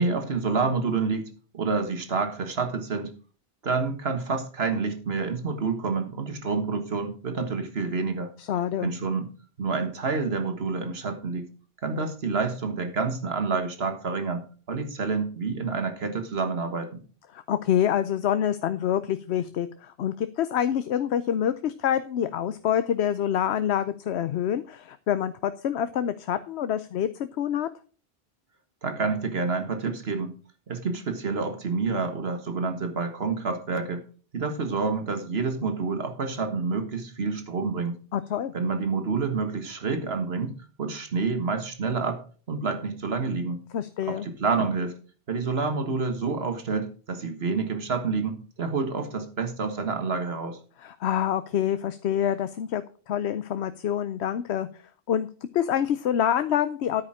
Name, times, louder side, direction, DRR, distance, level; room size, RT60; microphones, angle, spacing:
voice 1, 0.0-3.1 3.6-8.3 8.8-9.3 9.6-11.5 11.8-17.0 28.8-30.3 30.7-34.0 34.3-37.9 38.5-42.2 42.5-43.6 44.1-45.0 45.3-50.6, right 4 dB, 70° right, 7 dB, 1.8 m, -28 dB
voice 2, 8.4-8.9 17.3-27.1 27.4-27.7 38.1-38.5 43.7-44.3 50.8-54.7 55.1-55.3 55.5-57.0, left 9 dB, 85° left, 11 dB, 0.9 m, -26 dB
9.9 x 8.6 x 4.9 m, 0.40 s
omnidirectional pair, 1.1 m